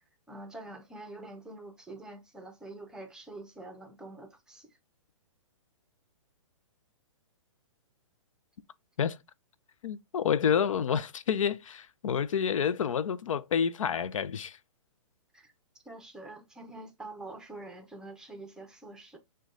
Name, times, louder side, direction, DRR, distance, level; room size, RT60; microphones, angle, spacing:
voice 1, 0.3-4.7 15.3-15.5 15.8-19.2, right 2 dB, 5° right, 0.6 m, -46 dB
voice 2, 9.8-14.6, left 7 dB, 80° left, 0.4 m, -29 dB
6.1 x 2.3 x 3.7 m
hypercardioid pair, 140°, 17 cm